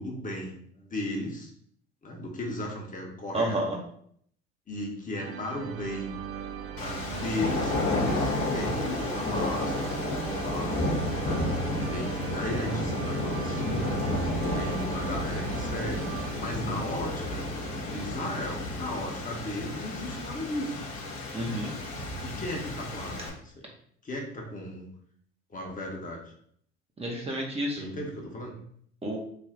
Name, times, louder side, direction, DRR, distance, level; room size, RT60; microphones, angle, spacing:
voice 1, 0.0-1.5 2.0-3.6 4.7-6.1 6.7-10.7 11.2-11.4 11.7-14.1 14.5-17.5 17.8-20.8 22.2-23.6 24.0-24.9 25.5-26.3 27.8-28.5, left 1 dB, 25° left, 0 dB, 1.0 m, -36 dB
voice 2, 3.3-3.8 21.3-21.7 27.0-27.9 29.0-29.2, right 1 dB, 15° right, -1 dB, 0.8 m, -30 dB
sound 1, 5.2-17.1, right 8 dB, 75° right, 0.5 m, -39 dB
sound 2, 6.8-23.3, left 2 dB, 55° left, 1.0 m, -31 dB
3.4 x 2.4 x 3.7 m, 0.64 s
hypercardioid pair, 70°, 34 cm